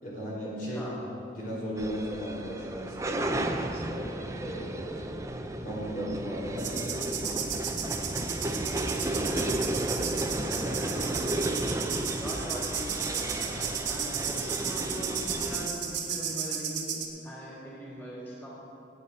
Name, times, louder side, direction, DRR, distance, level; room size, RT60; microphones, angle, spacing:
voice 1, 0.0-0.8 1.3-3.4 3.7-4.9 5.6-7.0, equal, 50° left, -5 dB, 3.3 m, -36 dB
voice 2, 0.6-1.0 9.1-9.8 10.3-11.0 12.2-18.5, equal, 10° left, -8 dB, 3.3 m, -41 dB
sound 1, 1.8-15.7, right 1 dB, 15° right, 0.7 m, -33 dB
sound 2, 6.6-17.1, right 7 dB, 85° right, 1.7 m, -34 dB
19.0 x 9.5 x 4.2 m, 2.7 s
head